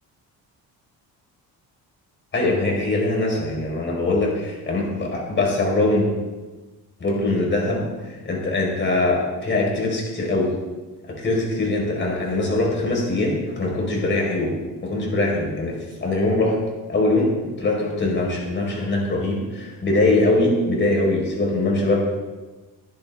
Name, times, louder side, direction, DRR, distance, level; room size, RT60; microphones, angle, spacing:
voice 1, 2.3-6.1 7.0-10.5 11.0-14.6 14.8-16.6 16.9-17.3 17.6-22.0, left 2 dB, 30° left, -1 dB, 4.6 m, -22 dB
21.0 x 10.5 x 3.6 m, 1.2 s
cardioid pair, 135°, 37 cm